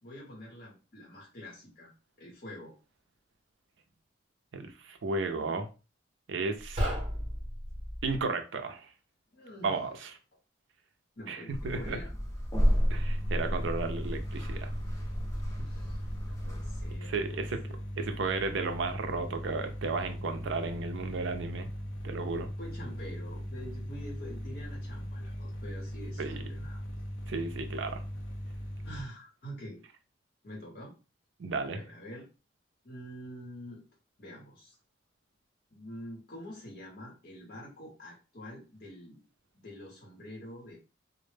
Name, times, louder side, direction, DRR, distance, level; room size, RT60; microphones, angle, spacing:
voice 1, 0.0-1.9 2.2-2.7 9.3-9.8 11.2-12.1 15.6-17.7 22.6-26.8 28.8-29.8 30.4-30.9 31.6-32.3 32.8-33.8 34.2-34.8 35.7-39.2 39.5-40.8, equal, 45° left, 0.8 m, -46 dB
voice 2, 4.5-5.7 6.3-6.8 8.0-8.9 9.6-10.1 11.3-12.0 12.9-14.7 17.0-17.6 18.0-21.7 22.0-22.5 26.2-26.4 27.3-28.0 31.4-31.8, right 3 dB, 70° right, 0.4 m, -33 dB
sound 1, 6.6-8.2, equal, 30° right, 0.8 m, -34 dB
sound 2, 11.5-17.0, equal, 15° left, 0.7 m, -31 dB
sound 3, 12.5-29.0, equal, 80° left, 0.4 m, -39 dB
2.0 x 2.0 x 3.2 m
head